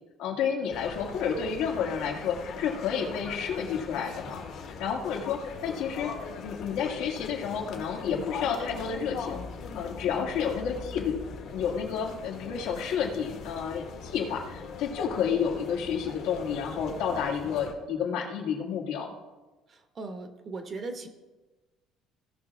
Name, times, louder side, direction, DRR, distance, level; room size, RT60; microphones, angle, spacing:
voice 1, 0.2-4.4 4.8-6.1 6.4-9.4 9.7-11.2 11.5-19.1, left 7 dB, 80° left, 0 dB, 1.9 m, -30 dB
sound 1, 0.7-17.7, left 5 dB, 60° left, 1.6 m, -41 dB
voice 2, 19.7-21.1, right 3 dB, 30° right, 7 dB, 1.0 m, -38 dB
17.0 x 5.9 x 3.6 m, 1.2 s
cardioid pair, 145°, 0 cm